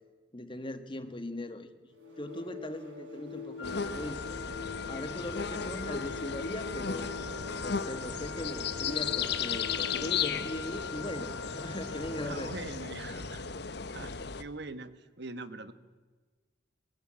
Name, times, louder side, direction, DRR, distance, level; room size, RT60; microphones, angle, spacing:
voice 1, 0.3-1.7 2.2-4.2 4.9-7.1 7.6-12.5 13.1-13.2, left 1 dB, 25° left, 9 dB, 1.6 m, -39 dB
sound 1, 1.9-10.3, left 4 dB, 80° right, 8.0 m, -45 dB
Wind instrument woodwind instrument, 3.6-12.4, left 7 dB, 85° left, 3.4 m, -44 dB
sound 2, 3.6-14.4, left 6 dB, 60° left, 1.1 m, -35 dB
voice 2, 12.2-13.4 13.9-15.7, right 3 dB, 60° right, 12 dB, 1.4 m, -43 dB
21.5 x 20.5 x 8.7 m, 1.3 s
head